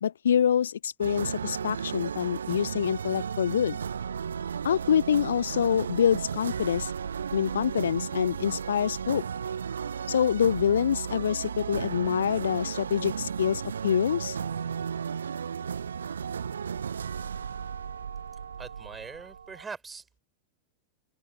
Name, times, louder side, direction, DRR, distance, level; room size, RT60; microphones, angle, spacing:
voice 1, 0.0-3.8 4.6-6.9 7.3-9.2 10.1-14.4, left 8 dB, 65° left, 0.4 m, -26 dB
sound 1, 1.0-19.7, right 7 dB, 70° right, 0.6 m, -34 dB
voice 2, 18.6-20.1, right 5 dB, 15° right, 5.9 m, -42 dB
figure-of-eight pair, 90°, 0 cm